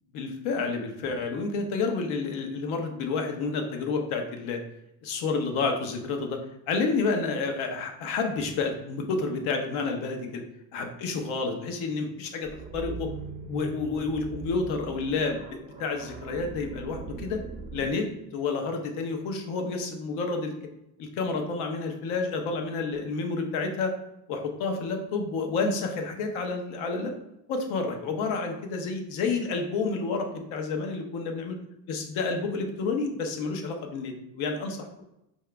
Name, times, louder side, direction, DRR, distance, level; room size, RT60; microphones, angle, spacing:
voice 1, 0.1-4.6 5.0-6.4 6.7-10.4 10.7-13.1 13.5-17.4 17.7-20.5 21.0-23.9 24.3-27.1 27.5-31.6 31.9-35.0, left 4 dB, 85° left, 3 dB, 0.9 m, -30 dB
Deep zombie rumble, 12.5-17.9, right 4 dB, 15° right, 0.5 m, -40 dB
4.8 x 2.7 x 3.3 m, 0.84 s
cardioid pair, 90°, 48 cm